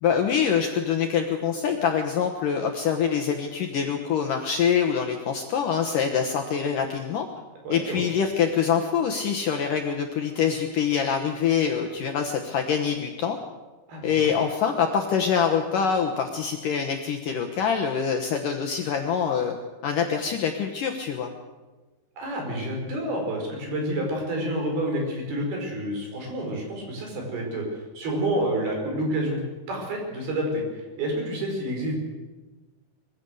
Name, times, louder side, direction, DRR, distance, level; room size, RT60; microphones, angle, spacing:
voice 1, 0.0-7.3 7.7-13.4 14.0-19.5 19.8-21.3, left 7 dB, 65° left, 4 dB, 2.2 m, -25 dB
voice 2, 7.6-8.0 13.9-14.3 22.2-29.4 29.7-32.0, right 1 dB, 60° right, 1 dB, 6.6 m, -29 dB
22.5 x 16.0 x 8.0 m, 1.3 s
omnidirectional pair, 5.1 m